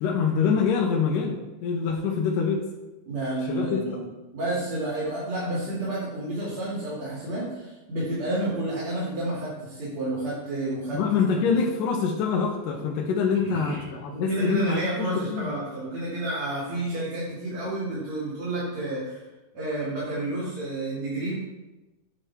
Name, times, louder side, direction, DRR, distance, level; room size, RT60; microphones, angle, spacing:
voice 1, 0.0-2.6 3.5-4.0 10.9-15.5, left 6 dB, 75° left, -1 dB, 2.4 m, -25 dB
voice 2, 3.1-4.1 4.3-11.0 11.3-11.4 13.4-13.8 14.1-19.2 19.5-21.3, right 2 dB, 50° right, -10 dB, 3.8 m, -30 dB
10.0 x 6.8 x 4.4 m, 1.1 s
omnidirectional pair, 4.0 m